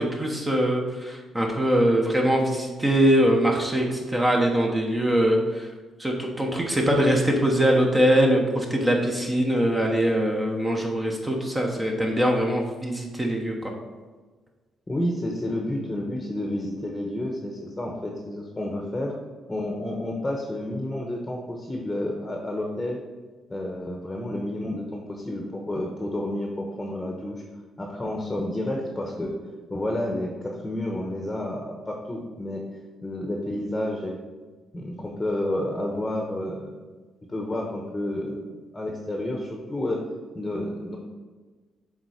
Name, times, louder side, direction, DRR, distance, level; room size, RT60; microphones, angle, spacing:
voice 1, 0.0-5.7 6.0-13.7, right 1 dB, 15° right, 0 dB, 1.1 m, -22 dB
voice 2, 14.9-19.1 19.5-23.0 23.5-27.4 27.8-29.3 29.7-32.6 33.0-34.2 34.7-36.7 37.3-38.5 38.7-40.0 40.3-41.0, left 1 dB, 15° left, 0 dB, 1.1 m, -30 dB
7.2 x 3.8 x 5.0 m, 1.4 s
cardioid pair, 90°, 0 cm